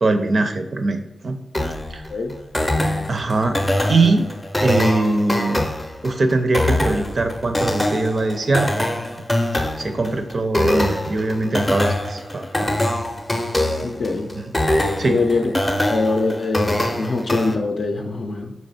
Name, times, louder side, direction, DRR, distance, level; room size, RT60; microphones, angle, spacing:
voice 1, 0.0-1.4 1.9-2.1 3.1-3.6 3.9-4.3 4.6-5.6 6.0-8.9 9.8-12.8 14.3-14.5 15.0-15.2, right 3 dB, 50° right, 7 dB, 0.5 m, -21 dB
sound 1, 1.5-17.5, left 1 dB, 15° left, 0.5 m, -23 dB
voice 2, 13.8-14.3 15.1-15.5 15.9-18.5, left 3 dB, 65° left, 2 dB, 0.5 m, -23 dB
4.4 x 2.9 x 4.1 m, 0.84 s
cardioid pair, 75°, 0 cm